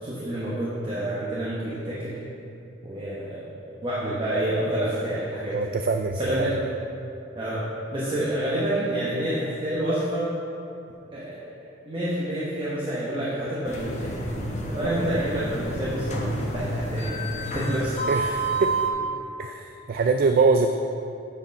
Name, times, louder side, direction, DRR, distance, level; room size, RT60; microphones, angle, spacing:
voice 1, 0.0-2.1 2.8-5.7 6.2-6.5 7.3-7.6 7.9-10.2 11.1-11.5 11.9-14.1 14.7-18.2, right 1 dB, 25° right, -8 dB, 1.1 m, -28 dB
voice 2, 5.5-6.5 18.1-18.7 19.4-20.7, right 4 dB, 50° right, 6 dB, 0.3 m, -23 dB
sound 1, 13.6-18.9, right 1 dB, 35° left, 0.9 m, -29 dB
8.7 x 5.1 x 5.3 m, 2.7 s
head